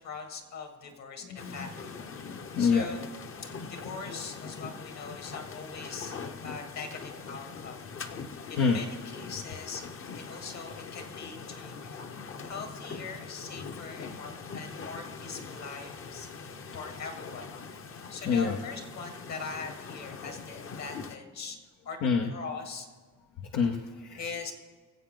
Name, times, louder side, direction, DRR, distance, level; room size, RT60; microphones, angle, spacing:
voice 1, 0.0-2.0 2.6-3.0 3.7-6.1 6.4-7.9 8.5-9.8 10.1-12.1 12.4-17.5 18.1-21.6 21.8-22.0 22.3-22.9 24.2-24.5, left 4 dB, 60° left, 4 dB, 2.2 m, -41 dB
sound 1, 1.4-21.2, left 5 dB, 45° left, 0.9 m, -42 dB
voice 2, 2.2-2.9 8.3-8.8 14.0-14.1 18.2-18.6 22.0-22.3 23.5-24.2, left 5 dB, 90° left, 2 dB, 0.9 m, -27 dB
22.0 x 7.8 x 3.8 m, 1.5 s
cardioid pair, 90°, 30 cm